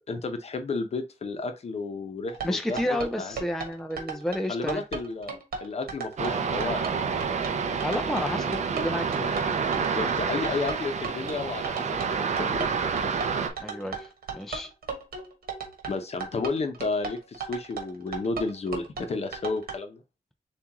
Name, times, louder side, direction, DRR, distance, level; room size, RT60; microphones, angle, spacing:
voice 1, 0.1-2.8 3.2-3.3 4.5-7.1 7.3-7.5 9.7-12.7 15.9-20.0, left 3 dB, 45° left, 0.8 m, -32 dB
sound 1, 2.3-19.8, right 5 dB, 80° right, 1.5 m, -36 dB
voice 2, 2.4-4.8 7.8-9.3 13.6-14.7, left 1 dB, 5° left, 0.4 m, -31 dB
sound 2, 6.2-13.5, right 5 dB, 50° right, 0.7 m, -28 dB
7.3 x 2.5 x 2.9 m
wide cardioid pair, 180°, 15 cm